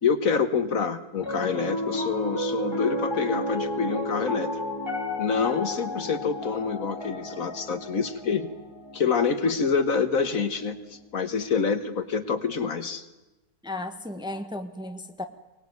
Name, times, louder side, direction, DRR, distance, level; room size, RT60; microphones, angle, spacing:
voice 1, 0.0-4.6 5.2-8.5 8.9-13.0, left 5 dB, 60° left, 10 dB, 1.7 m, -27 dB
Piano, 1.2-11.5, left 1 dB, 15° left, 3.3 m, -33 dB
voice 2, 13.6-15.2, left 1 dB, 5° right, 7 dB, 1.2 m, -34 dB
23.5 x 18.5 x 9.4 m, 1.0 s
omnidirectional pair, 1.7 m